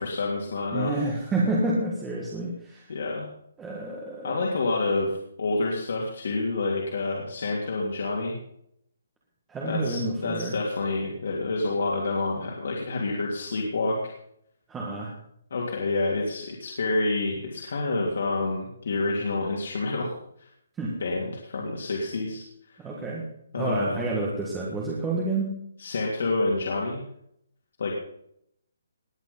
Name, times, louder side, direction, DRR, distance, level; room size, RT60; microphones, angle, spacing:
voice 1, 0.0-1.1 2.9-3.3 4.2-8.4 9.6-14.1 15.5-20.1 20.4-20.5 21.0-22.8 23.5-24.1 25.8-27.0 27.8-27.9, left 3 dB, 50° left, -2 dB, 3.2 m, -28 dB
voice 2, 0.7-2.9 3.6-4.5 9.5-10.5 14.7-15.1 20.8-20.9 22.8-23.2 23.5-25.5, right 2 dB, 5° right, -4 dB, 1.6 m, -29 dB
19.5 x 9.3 x 5.6 m, 0.73 s
hypercardioid pair, 180°, 0 cm